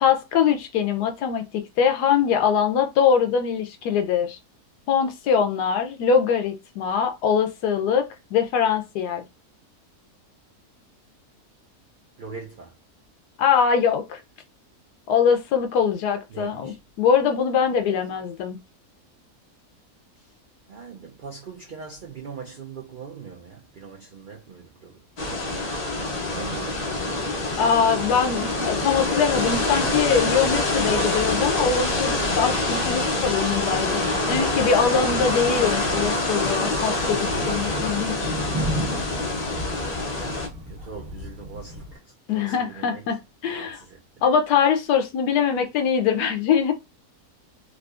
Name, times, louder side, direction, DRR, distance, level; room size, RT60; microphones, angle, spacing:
voice 1, 0.0-4.4 4.9-9.2 13.4-14.2 15.1-18.6 27.6-34.0 34.3-38.3 42.3-43.2 43.4-43.8 44.2-46.7, left 7 dB, 90° left, 1.2 m, -22 dB
voice 2, 12.2-12.8 16.3-16.8 20.2-20.3 20.7-24.9 25.3-26.9 40.7-42.0 42.3-43.0 43.5-44.0, right 5 dB, 80° right, 0.4 m, -41 dB
sound 1, 25.2-40.5, left 2 dB, 70° left, 0.3 m, -25 dB
Thunder, 36.9-42.0, equal, 40° right, 1.2 m, -33 dB
3.6 x 2.6 x 2.4 m
omnidirectional pair, 1.7 m